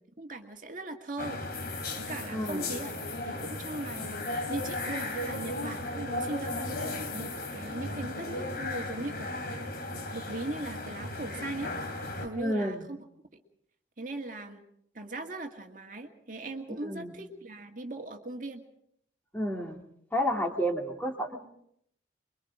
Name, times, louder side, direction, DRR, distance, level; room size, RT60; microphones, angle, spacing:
voice 1, 0.2-1.7 2.0-2.9 3.3-9.7 10.1-11.7 12.2-13.0 13.3-13.4 14.0-14.6 14.9-18.6, right 2 dB, 45° right, 3 dB, 2.0 m, -39 dB
sound 1, 1.2-12.3, left 2 dB, 55° left, 3.0 m, -36 dB
voice 2, 2.3-2.7 12.4-12.9 16.8-17.1 19.3-19.8 20.1-21.5, equal, 10° left, 1 dB, 2.5 m, -31 dB
25.0 x 23.5 x 4.9 m, 0.69 s
head